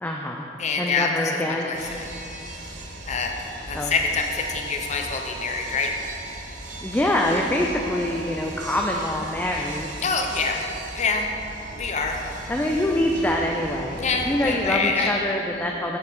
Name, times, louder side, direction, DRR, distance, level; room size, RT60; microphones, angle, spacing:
voice 1, 0.0-0.5 0.8-1.7 3.7-3.9 6.8-9.9 12.5-16.0, left 1 dB, 10° left, 0 dB, 0.3 m, -25 dB
voice 2, 0.6-2.1 3.1-3.3 3.7-5.9 10.0-10.6 10.9-11.3 11.7-12.2 13.9-15.2, left 4 dB, 40° left, 2 dB, 0.7 m, -26 dB
sound 1, 1.7-14.8, right 2 dB, 45° right, 0.9 m, -38 dB
7.9 x 7.3 x 3.5 m, 3.0 s
head